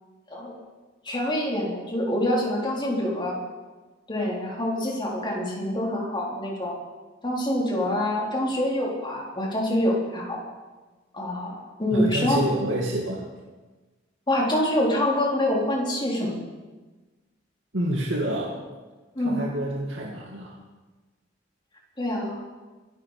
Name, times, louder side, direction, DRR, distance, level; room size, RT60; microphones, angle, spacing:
voice 1, 1.0-3.3 4.1-6.7 7.2-10.4 11.1-12.4 14.3-16.4 19.2-19.4 22.0-22.4, left 1 dB, 25° left, -3 dB, 3.9 m, -26 dB
voice 2, 11.9-13.3 17.7-18.6 19.2-20.6, right 1 dB, 75° right, -2 dB, 2.2 m, -28 dB
23.5 x 11.5 x 5.0 m, 1.2 s
head